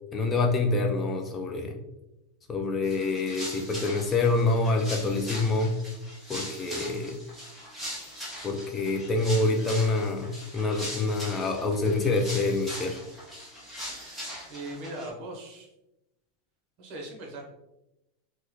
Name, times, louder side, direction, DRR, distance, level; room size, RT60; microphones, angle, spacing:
voice 1, 0.1-1.8 2.5-5.8 6.3-7.2 8.4-13.0, left 3 dB, 20° left, 2 dB, 0.3 m, -26 dB
sound 1, 2.8-15.1, equal, ahead, 1.0 m, -40 dB
voice 2, 14.5-15.7 16.8-17.5, right 1 dB, 45° right, 0 dB, 0.9 m, -39 dB
3.3 x 2.2 x 2.9 m, 0.93 s
supercardioid pair, 150°, 0 cm